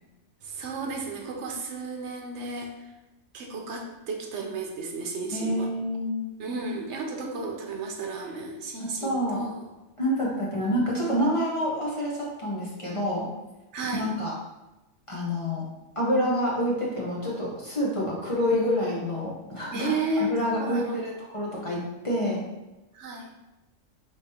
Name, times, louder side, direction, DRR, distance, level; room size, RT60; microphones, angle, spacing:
voice 1, 0.4-2.9 3.3-5.7 6.4-9.7 10.2-10.3 13.7-14.1 18.3-18.5 19.7-21.1 22.9-23.3, right 2 dB, 70° right, 2 dB, 0.9 m, -33 dB
voice 2, 5.3-6.2 8.8-9.4 10.0-13.3 14.0-14.3 15.1-15.6 16.0-19.9 20.2-22.4, equal, 30° left, -5 dB, 0.8 m, -27 dB
4.9 x 3.4 x 2.7 m, 1.0 s
omnidirectional pair, 1.3 m